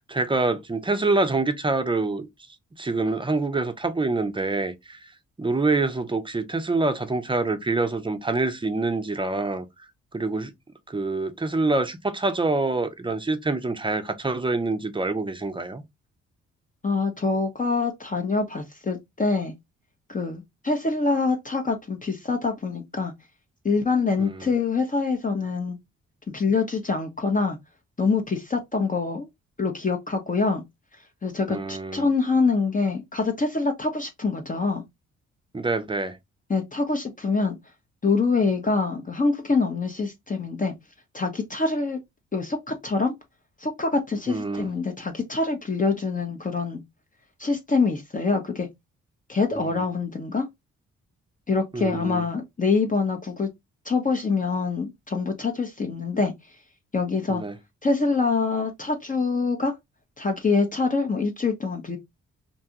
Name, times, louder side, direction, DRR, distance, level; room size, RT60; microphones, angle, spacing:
voice 1, 0.0-2.3 2.8-5.0 5.4-9.6 10.1-10.5 10.9-15.8 24.2-24.5 31.5-32.0 35.5-36.2 44.3-44.7 49.5-49.8 51.7-52.2 57.3-57.5, right 3 dB, 15° right, 0.6 m, -26 dB
voice 2, 16.8-19.5 20.1-23.1 23.6-25.8 26.3-27.6 28.0-29.3 29.6-30.6 31.2-34.8 36.5-37.6 38.0-40.7 41.1-42.0 42.3-43.1 43.6-46.8 47.4-48.7 49.3-50.4 51.5-53.5 53.8-56.3 56.9-57.4 57.8-59.7 60.2-62.0, left 4 dB, 25° left, 0.7 m, -25 dB
2.6 x 2.3 x 2.8 m
supercardioid pair, 50°, 30 cm